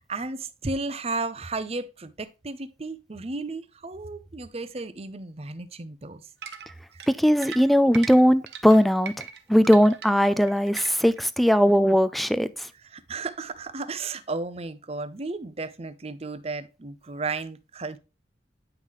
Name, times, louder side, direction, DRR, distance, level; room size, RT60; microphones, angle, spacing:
voice 1, 0.0-6.3 6.9-7.0 12.7-18.0, right 3 dB, 35° right, 0.7 m, -34 dB
sound 1, 6.4-11.2, right 7 dB, 75° right, 1.0 m, -40 dB
voice 2, 7.2-9.1 9.5-12.5, equal, ahead, 0.4 m, -19 dB
9.0 x 5.6 x 3.1 m
head